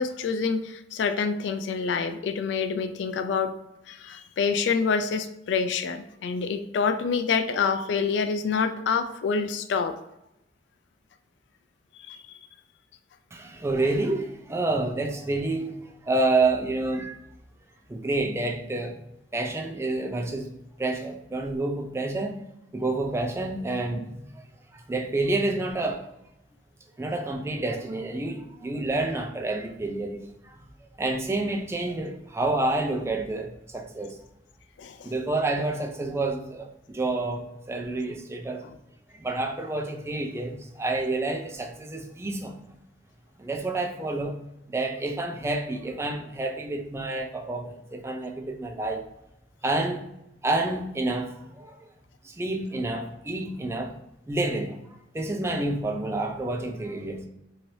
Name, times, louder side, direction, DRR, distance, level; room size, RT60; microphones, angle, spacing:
voice 1, 0.0-3.5 3.9-10.0 12.1-12.2 34.8-35.1, left 5 dB, 80° left, 9 dB, 0.3 m, -27 dB
voice 2, 13.3-17.2 17.9-19.0 19.3-20.5 20.8-22.4 22.7-24.4 24.7-26.1 27.0-30.6 31.0-34.2 35.0-38.7 39.2-42.6 43.4-44.4 44.7-49.1 49.6-50.1 50.4-51.8 52.2-53.9 54.3-54.8 55.1-57.3, right 2 dB, 15° right, 3 dB, 0.3 m, -29 dB
2.8 x 2.6 x 3.0 m, 0.86 s
head